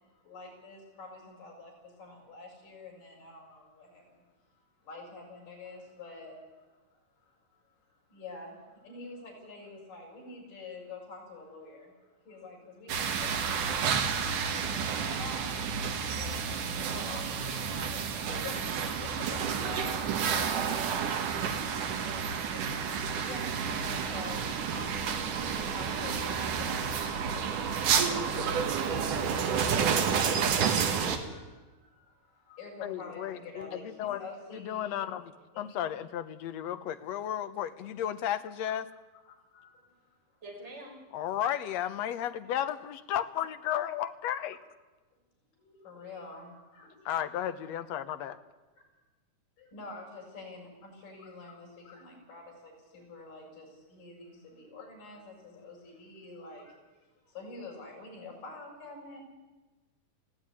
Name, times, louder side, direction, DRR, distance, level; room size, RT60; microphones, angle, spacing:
voice 1, 0.0-4.3 4.6-6.7 7.2-14.0 14.4-18.6 19.0-20.0 22.6-35.1 35.5-35.8 39.3-40.4 45.6-47.8 48.8-48.9 49.6-56.8 57.2-59.2, left 2 dB, 90° left, -3 dB, 8.7 m, -47 dB
sound 1, 12.9-31.2, right 6 dB, 75° right, 3.1 m, -30 dB
voice 2, 19.7-22.3 40.4-41.0, right 1 dB, 20° right, 0 dB, 4.9 m, -46 dB
voice 3, 32.8-34.3 34.5-35.3 35.6-38.9 41.1-44.6 47.1-48.4, left 10 dB, 70° left, 10 dB, 1.8 m, -34 dB
19.0 x 16.0 x 10.0 m, 1.2 s
omnidirectional pair, 3.8 m